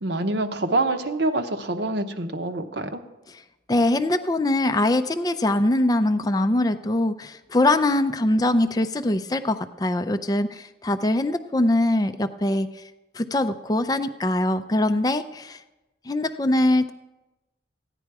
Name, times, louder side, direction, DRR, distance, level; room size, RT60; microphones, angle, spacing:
voice 1, 0.0-3.0, right 2 dB, 65° right, 7 dB, 0.9 m, -26 dB
voice 2, 3.7-12.7 13.1-15.6 16.1-16.9, left 1 dB, 20° left, 8 dB, 0.4 m, -22 dB
15.0 x 9.9 x 4.7 m, 1.0 s
head